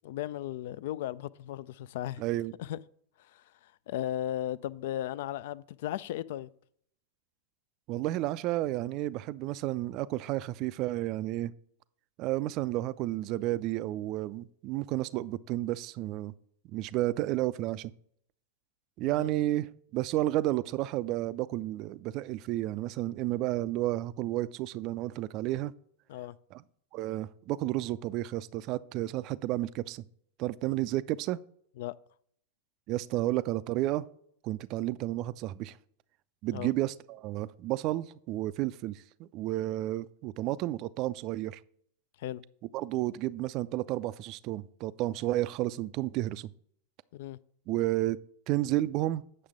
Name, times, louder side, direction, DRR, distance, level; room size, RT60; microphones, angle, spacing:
voice 1, 0.0-2.2 2.6-2.8 3.2-6.5 19.0-19.3 26.1-26.4 31.8-31.9 36.5-36.7 42.2-42.4 47.1-47.4, left 12 dB, 55° left, 0.3 m, -36 dB
voice 2, 2.2-2.5 7.9-11.5 12.2-16.3 16.7-17.9 19.0-25.7 26.5-26.6 26.9-30.0 30.4-31.4 32.9-34.1 34.4-35.8 36.4-41.6 42.7-46.5 47.7-48.2 48.5-49.2, right 15 dB, 40° right, 0.3 m, -31 dB
8.7 x 6.6 x 3.6 m
figure-of-eight pair, 90°, 0 cm